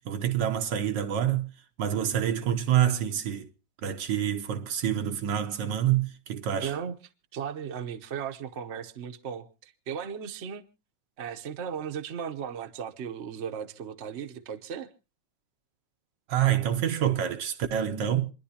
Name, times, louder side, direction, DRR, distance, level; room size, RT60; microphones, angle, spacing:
voice 1, 0.0-1.5 1.8-3.5 3.8-6.7 16.3-18.3, right 10 dB, 75° right, 1.6 m, -27 dB
voice 2, 6.6-7.0 7.3-10.6 11.2-14.9, right 7 dB, 45° right, 1.0 m, -36 dB
27.5 x 10.5 x 2.8 m
omnidirectional pair, 2.0 m